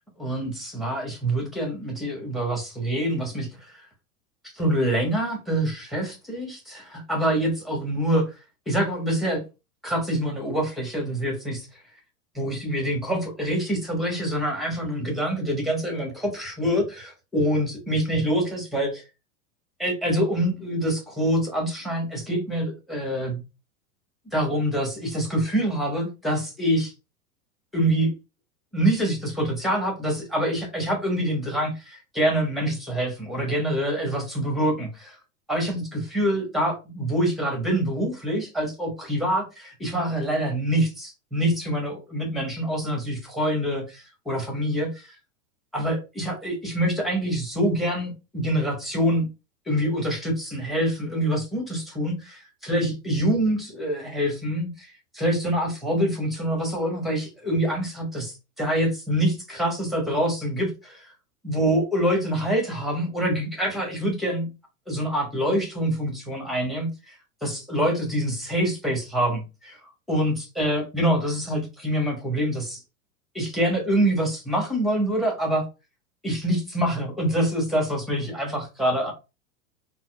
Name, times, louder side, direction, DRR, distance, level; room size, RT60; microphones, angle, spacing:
voice 1, 0.2-3.8 4.5-8.3 8.7-9.4 9.8-11.7 12.3-19.0 19.8-23.4 24.3-26.9 27.7-28.1 28.7-35.2 35.5-45.1 45.7-49.3 49.7-54.9 55.1-61.1 61.4-64.5 64.9-67.2 67.4-69.8 70.1-72.8 73.3-75.6 76.2-79.1, right 1 dB, ahead, 1.2 m, -25 dB
4.0 x 2.1 x 2.4 m
hypercardioid pair, 100°, 44 cm